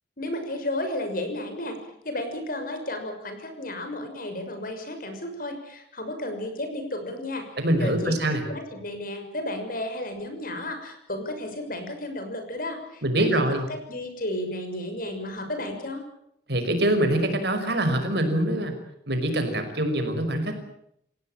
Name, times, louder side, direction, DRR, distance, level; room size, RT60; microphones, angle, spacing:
voice 1, 0.2-1.8 2.0-8.1 8.5-13.4 13.7-16.0, left 1 dB, 50° left, 6 dB, 6.3 m, -33 dB
voice 2, 7.6-8.4 13.0-13.7 16.5-18.7 19.1-20.5, right 1 dB, 60° right, 6 dB, 5.7 m, -24 dB
29.5 x 17.0 x 9.0 m, 0.74 s
head